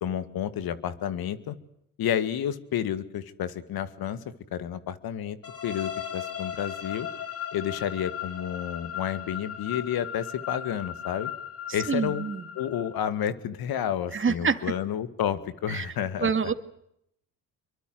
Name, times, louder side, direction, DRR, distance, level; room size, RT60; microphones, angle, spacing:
voice 1, 0.0-1.6 2.0-4.2 4.5-5.4 5.6-7.1 7.5-11.3 11.7-12.3 12.6-16.5, left 9 dB, 65° left, 13 dB, 2.3 m, -30 dB
sound 1, 5.4-13.2, left 9 dB, 35° left, 4.0 m, -37 dB
voice 2, 11.9-12.4 14.1-14.7 15.7-15.9 16.2-16.5, right 5 dB, 30° right, 9 dB, 2.4 m, -26 dB
26.5 x 23.5 x 8.0 m, 0.75 s
supercardioid pair, 65°, 39 cm